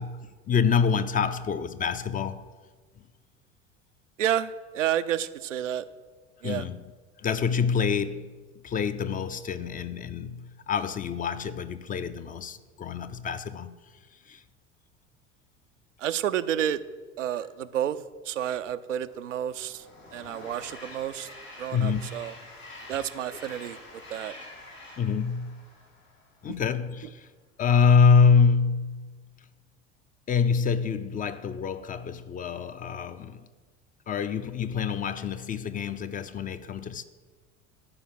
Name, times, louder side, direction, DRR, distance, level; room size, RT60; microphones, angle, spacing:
voice 1, 0.0-2.5 6.4-6.8 7.2-8.3 8.6-13.7 14.3-14.4 21.7-22.1 25.0-25.6 26.4-27.3 27.6-29.1 30.3-33.5 34.1-37.0, left 6 dB, 20° left, 0.5 m, -26 dB
voice 2, 4.2-5.9 6.4-6.7 16.0-16.8 17.2-18.0 18.2-19.9 20.1-21.3 21.6-22.3 22.9-23.8 24.1-24.3, right 10 dB, 80° right, 0.6 m, -30 dB
Train, 19.0-26.5, left 2 dB, 90° left, 2.5 m, -47 dB
13.0 x 5.0 x 7.7 m
figure-of-eight pair, 70°, 37 cm